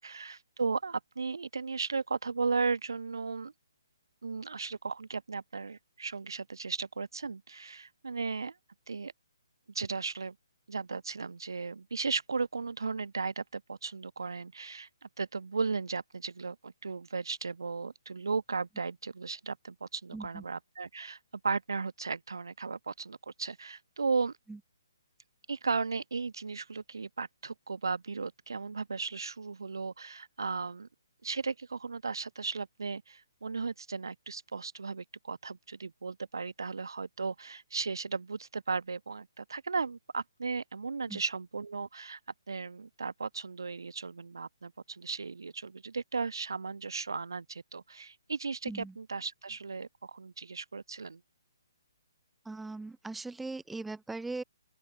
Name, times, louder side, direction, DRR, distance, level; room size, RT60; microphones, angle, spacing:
voice 1, 0.0-3.5 4.2-8.5 8.9-9.1 9.7-10.3 10.7-21.2 21.4-24.3 25.5-30.9 31.2-42.2 42.5-51.2, right 4 dB, 65° right, 2.9 m, -36 dB
voice 2, 20.1-20.4 24.5-24.6 41.1-41.2 48.7-49.0 52.4-54.4, right 3 dB, 5° right, 4.9 m, -39 dB
open air
figure-of-eight pair, 135°, 2 cm